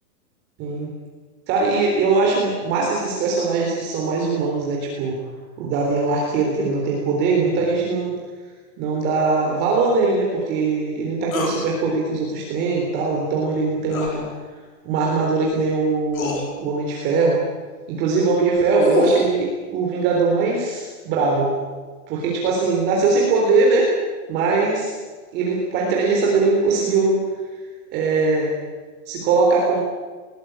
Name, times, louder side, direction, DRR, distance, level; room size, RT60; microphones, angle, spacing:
voice 1, 0.6-0.9 1.5-5.2 5.6-8.2 8.8-14.3 14.8-17.4 17.9-21.5 22.1-23.9 24.3-24.9 25.3-27.2 27.9-28.5 29.1-29.8, right 3 dB, 20° right, -1 dB, 3.7 m, -21 dB
sound 1, 11.3-11.6 13.9-14.2 15.5-15.6 16.1-16.4 18.4-19.3, left 4 dB, 55° left, 6.1 m, -26 dB
21.5 x 19.0 x 9.0 m, 1.4 s
hypercardioid pair, 175°, 48 cm